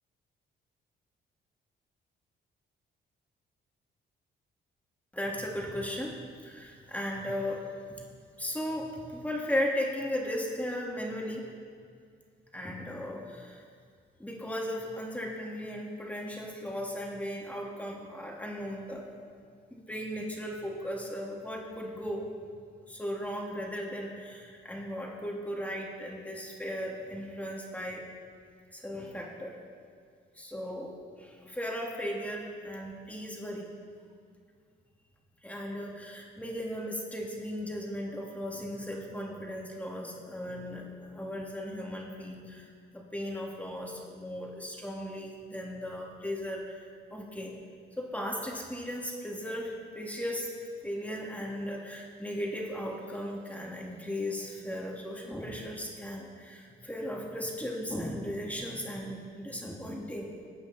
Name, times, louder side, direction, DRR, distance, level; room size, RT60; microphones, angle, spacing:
voice 1, 5.1-6.2 6.4-7.6 8.4-11.4 12.5-13.6 14.2-19.1 19.7-22.3 22.9-28.0 28.7-29.6 30.4-30.9 31.2-33.7 35.4-42.6 42.9-46.8 47.1-47.6 48.0-50.5 50.8-60.3, equal, 5° left, -2 dB, 2.8 m, -36 dB
21.0 x 8.8 x 4.4 m, 2.2 s
cardioid pair, 90°, 20 cm